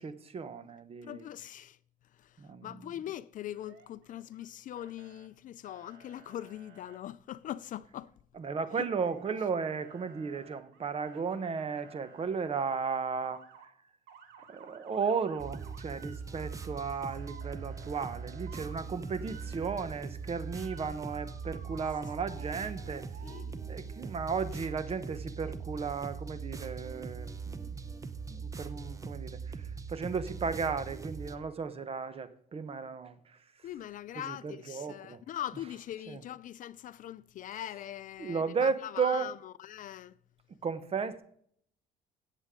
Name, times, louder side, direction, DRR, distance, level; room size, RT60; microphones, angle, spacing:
voice 1, 0.0-1.3 2.4-2.9 8.3-13.4 14.5-23.0 23.7-27.8 28.3-29.6 29.9-33.2 34.2-35.2 36.1-36.2 38.2-39.3 40.6-41.2, right 5 dB, 35° right, 1.1 m, -35 dB
voice 2, 1.0-1.8 2.2-2.4 2.6-8.1 23.2-23.9 33.6-40.1, left 12 dB, 50° left, 0.4 m, -42 dB
Motor vehicle (road) / Siren, 3.5-4.5 4.8-5.3 5.6-7.0 8.8-9.5 9.7-12.7 13.2-13.7 14.1-23.4, right 7 dB, 80° right, 1.7 m, -55 dB
sound 1, 15.4-31.4, right 5 dB, 20° right, 0.8 m, -41 dB
17.0 x 7.4 x 3.7 m
cardioid pair, 110°, 17 cm